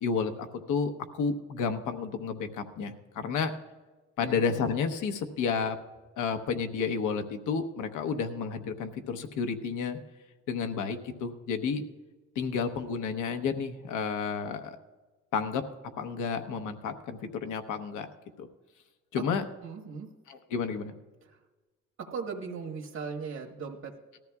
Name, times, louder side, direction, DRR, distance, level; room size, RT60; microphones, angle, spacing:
voice 1, 0.0-3.6 4.2-5.8 6.2-10.0 10.5-11.8 12.3-14.8 15.3-15.7 16.0-18.1 18.4-18.5 19.1-19.4 20.3-20.9, left 5 dB, 85° left, 7 dB, 1.0 m, -31 dB
voice 2, 19.6-20.1 21.3-21.4 22.0-24.2, right 5 dB, 65° right, 0 dB, 1.5 m, -38 dB
19.0 x 13.5 x 2.4 m, 1.2 s
cardioid pair, 90°, 30 cm